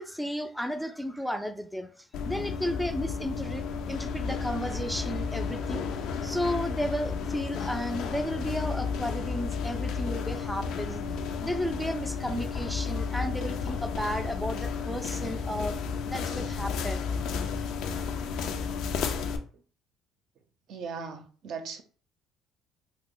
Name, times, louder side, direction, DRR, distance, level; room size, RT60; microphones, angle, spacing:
voice 1, 0.0-11.0 11.4-15.8 16.0-17.4, equal, ahead, 0.3 m, -33 dB
sound 1, 2.1-19.4, left 5 dB, 70° left, 0.4 m, -32 dB
voice 2, 20.7-21.8, right 5 dB, 65° right, 0.5 m, -39 dB
2.8 x 2.1 x 3.7 m
cardioid pair, 95°, 0 cm